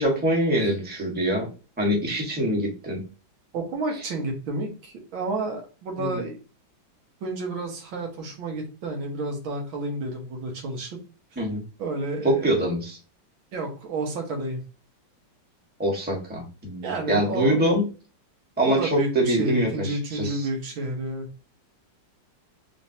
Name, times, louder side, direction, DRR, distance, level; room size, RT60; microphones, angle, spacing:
voice 1, 0.0-1.5 1.8-3.0 6.0-6.2 11.4-11.6 12.2-13.0 15.8-17.8 18.6-20.5, right 1 dB, 5° right, -2 dB, 0.9 m, -24 dB
voice 2, 3.5-6.4 7.2-11.0 11.8-12.5 13.5-14.6 16.8-17.8 18.6-21.3, right 2 dB, 90° right, 2 dB, 1.9 m, -30 dB
3.9 x 3.4 x 2.7 m, 0.34 s
omnidirectional pair, 2.1 m